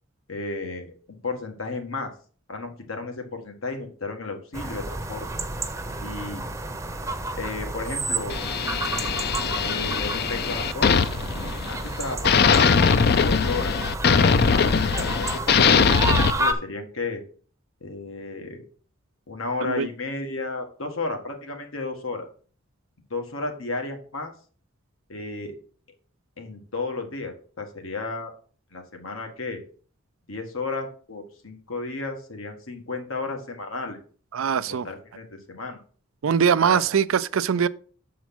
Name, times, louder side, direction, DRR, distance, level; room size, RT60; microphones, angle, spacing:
voice 1, 0.3-2.1 2.5-5.3 6.0-6.4 7.4-8.4 9.6-11.0 11.7-12.7 13.2-13.7 14.1-17.2 17.8-18.6 19.3-22.2 23.1-24.3 25.1-25.6 26.4-28.3 28.7-29.6 30.3-34.0 34.5-35.8 36.6-36.8, left 3 dB, 90° left, 1.7 m, -33 dB
sound 1, 4.5-16.5, right 2 dB, 15° right, 0.7 m, -31 dB
sound 2, 8.3-11.9 12.2-16.3, left 6 dB, 50° left, 0.4 m, -21 dB
voice 2, 34.3-34.9 36.2-37.7, right 7 dB, 90° right, 0.4 m, -22 dB
7.1 x 4.7 x 5.9 m
head